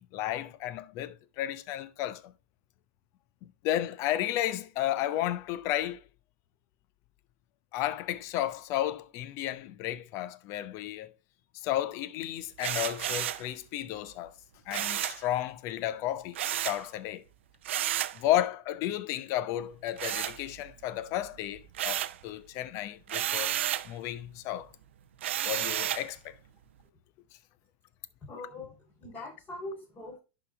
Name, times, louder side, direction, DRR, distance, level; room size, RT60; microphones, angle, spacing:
voice 1, 0.0-2.3 3.6-6.0 7.7-11.1 11.5-14.3 14.7-17.2 18.1-23.6 23.8-24.7 25.4-26.4, left 13 dB, 50° left, 0.7 m, -33 dB
sound 1, 12.6-13.5 14.7-15.2 16.3-16.8 17.6-18.2 20.0-20.8 21.2-22.2 23.1-23.9 25.2-26.1, right 12 dB, 75° right, 0.4 m, -32 dB
voice 2, 28.2-30.2, left 2 dB, 25° left, 3.3 m, -42 dB
11.0 x 4.0 x 3.5 m
hypercardioid pair, 100°, 6 cm